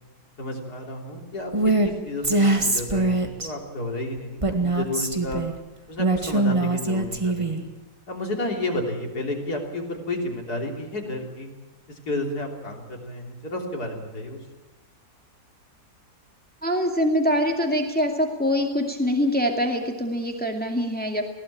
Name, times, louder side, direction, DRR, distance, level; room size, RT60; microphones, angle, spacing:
voice 1, 0.4-5.4 5.9-7.6 8.1-11.5 11.9-14.4, left 1 dB, 65° left, 1 dB, 3.8 m, -31 dB
Female speech woman speaking, 1.5-1.9 2.2-3.5 4.4-5.5 6.0-7.6, right 2 dB, 20° right, 1.6 m, -22 dB
voice 2, 16.6-21.3, equal, 5° left, 2 dB, 2.3 m, -24 dB
20.5 x 16.5 x 8.7 m, 1.1 s
omnidirectional pair, 1.8 m